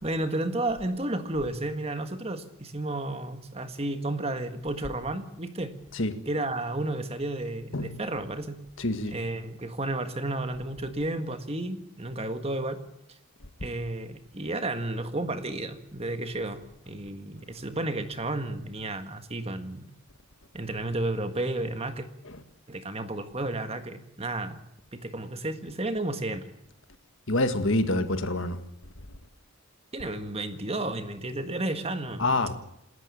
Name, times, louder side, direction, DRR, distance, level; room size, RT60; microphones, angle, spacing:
voice 1, 0.0-5.8 6.2-8.6 9.1-12.8 13.1-13.2 13.6-19.9 20.5-22.1 22.7-24.6 24.9-26.5 29.9-32.4, right 2 dB, 25° right, 1.7 m, -32 dB
voice 2, 8.8-9.1 22.3-22.4 27.3-28.6 32.2-32.5, left 2 dB, 60° left, 1.9 m, -26 dB
28.0 x 13.5 x 8.5 m
head